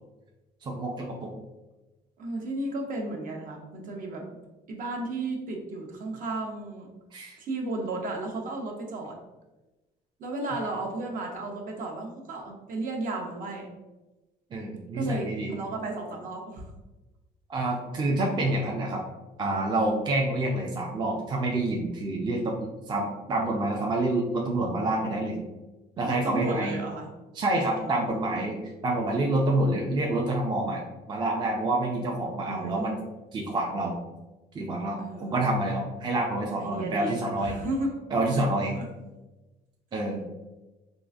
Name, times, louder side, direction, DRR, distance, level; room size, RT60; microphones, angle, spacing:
voice 1, 0.6-1.3 7.1-7.4 14.5-15.6 17.5-19.0 19.4-25.4 26.0-26.8 27.3-33.0 33.3-34.0 34.5-37.6 38.1-38.7 39.9-40.2, right 2 dB, 25° right, 0 dB, 0.4 m, -28 dB
voice 2, 2.2-4.2 4.7-6.9 7.4-9.2 10.2-13.7 14.9-16.7 26.0-27.1 27.8-28.1 32.4-33.0 35.0-35.3 36.6-37.9 38.7-38.8, right 2 dB, 55° right, 1 dB, 0.7 m, -33 dB
3.7 x 2.4 x 2.4 m, 1.1 s
cardioid pair, 110°, 17 cm